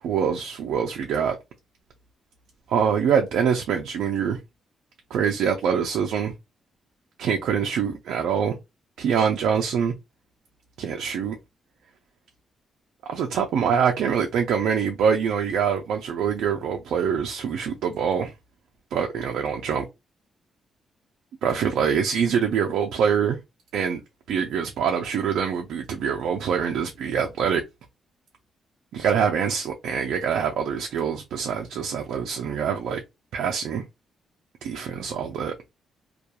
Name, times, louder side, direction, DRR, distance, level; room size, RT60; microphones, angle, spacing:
voice 1, 0.0-1.4 2.7-4.4 5.1-6.3 7.2-8.6 9.0-9.9 10.8-11.4 13.1-18.3 18.9-19.9 21.4-23.4 23.7-24.0 24.3-27.6 28.9-33.0 33.3-33.8 34.6-35.5, right 7 dB, 85° right, 0.4 m, -24 dB
2.3 x 2.3 x 2.8 m
cardioid pair, 145°, 0 cm